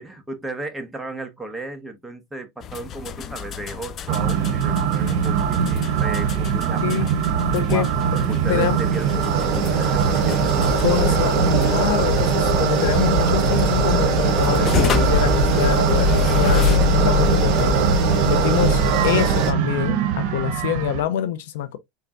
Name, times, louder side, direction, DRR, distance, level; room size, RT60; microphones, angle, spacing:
voice 1, 0.0-7.1 7.7-8.0 8.3-11.2, right 2 dB, 5° right, 1.1 m, -34 dB
sound 1, 2.6-16.8, left 7 dB, 35° left, 0.5 m, -33 dB
sound 2, 4.1-21.0, right 8 dB, 60° right, 1.0 m, -22 dB
voice 2, 6.8-7.1 7.5-7.9 8.5-8.8 10.8-17.8 18.2-21.8, left 10 dB, 80° left, 0.6 m, -25 dB
sound 3, 7.9-19.5, equal, 45° right, 1.9 m, -22 dB
4.5 x 3.5 x 2.5 m
supercardioid pair, 130°, 0 cm